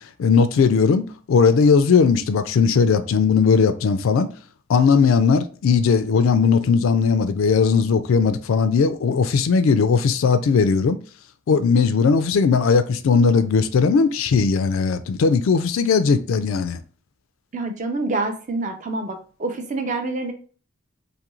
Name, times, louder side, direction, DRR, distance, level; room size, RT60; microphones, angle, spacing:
voice 1, 0.0-4.3 4.7-11.0 11.5-16.8, left 5 dB, 80° left, 0.4 m, -18 dB
voice 2, 17.5-20.3, right 2 dB, 35° right, 0.4 m, -27 dB
2.6 x 2.5 x 2.9 m
head